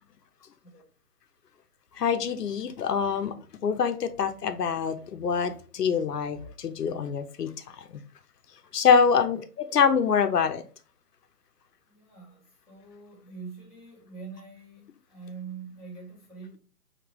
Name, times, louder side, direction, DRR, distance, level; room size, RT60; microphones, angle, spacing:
voice 1, 1.9-3.4 3.6-8.0 8.7-10.6, left 6 dB, 90° left, 0.8 m, -25 dB
voice 2, 11.9-16.6, right 5 dB, ahead, 1.7 m, -44 dB
5.1 x 2.9 x 3.0 m
hypercardioid pair, 175°, 46 cm